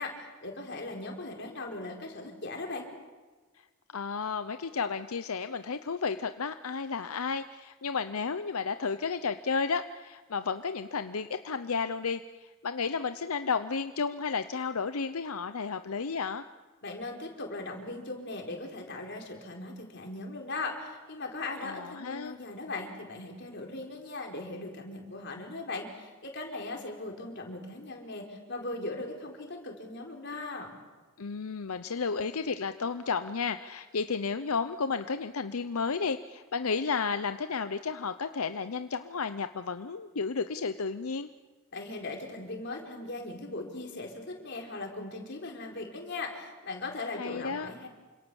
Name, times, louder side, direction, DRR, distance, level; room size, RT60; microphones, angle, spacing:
voice 1, 0.0-2.9 16.8-30.7 41.7-47.9, left 2 dB, 55° left, 1 dB, 4.7 m, -39 dB
voice 2, 3.9-16.5 21.6-22.4 31.2-41.3 47.2-47.7, left 5 dB, 85° left, 10 dB, 0.8 m, -32 dB
28.5 x 26.0 x 7.1 m, 1.3 s
head